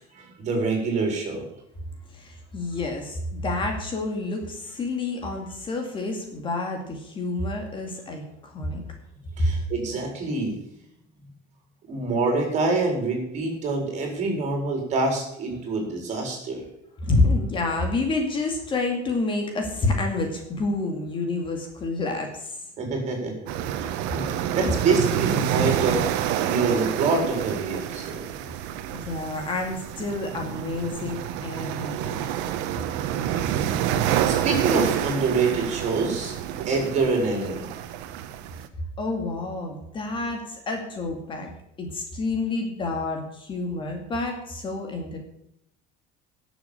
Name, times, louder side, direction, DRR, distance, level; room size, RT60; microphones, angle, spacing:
voice 1, 0.0-1.4 9.4-10.6 11.9-16.6 22.8-24.2 24.5-26.1 26.5-28.2 34.0-36.3 36.6-37.7, right 3 dB, 40° right, 2 dB, 4.5 m, -26 dB
voice 2, 2.1-8.8 9.4-9.5 17.0-22.6 28.9-32.2 39.0-41.5 41.8-45.2, left 2 dB, 25° left, 3 dB, 2.2 m, -28 dB
sound 1, 23.5-38.7, right 10 dB, 80° right, 1.2 m, -28 dB
11.5 x 7.1 x 8.6 m, 0.79 s
cardioid pair, 165°, 18 cm